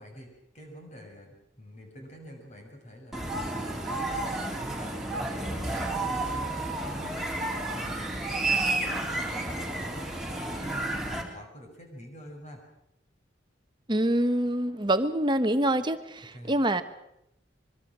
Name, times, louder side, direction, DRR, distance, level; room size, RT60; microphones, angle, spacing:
voice 1, 0.0-12.6 16.3-16.6, equal, 35° left, 2 dB, 6.4 m, -46 dB
sound 1, 3.1-11.2, right 2 dB, ahead, 3.7 m, -31 dB
voice 2, 13.9-16.8, right 1 dB, 25° right, 9 dB, 1.2 m, -25 dB
24.0 x 23.0 x 6.3 m, 0.80 s
head